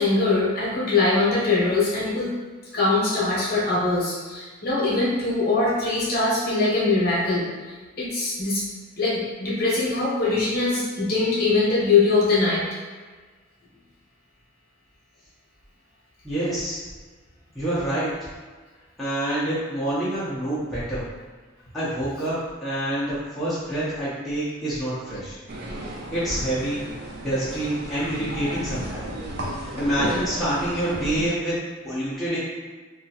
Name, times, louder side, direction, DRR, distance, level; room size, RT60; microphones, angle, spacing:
voice 1, 0.0-2.3 2.7-7.5 8.0-8.6 9.0-12.6, left 3 dB, 50° left, -7 dB, 0.8 m, -22 dB
voice 2, 16.2-16.8 17.5-18.2 19.0-21.1 21.7-25.4 25.8-26.8 27.2-29.1 29.6-32.4, right 1 dB, ahead, -12 dB, 0.6 m, -27 dB
sound 1, 25.5-31.3, right 1 dB, 50° right, 0.4 m, -34 dB
2.7 x 2.3 x 2.7 m, 1.4 s
head